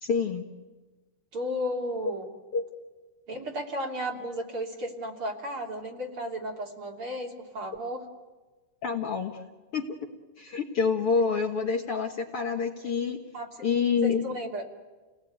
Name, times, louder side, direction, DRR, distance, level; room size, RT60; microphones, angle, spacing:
voice 1, 0.0-0.4 2.5-2.6 8.8-9.4 9.7-9.9 10.4-13.2 13.6-14.2, left 5 dB, 55° left, 2 dB, 1.9 m, -27 dB
voice 2, 1.3-2.3 3.3-8.0 13.3-13.5 14.0-14.6, equal, 40° right, 1 dB, 3.5 m, -34 dB
30.0 x 18.5 x 9.3 m, 1.3 s
omnidirectional pair, 3.7 m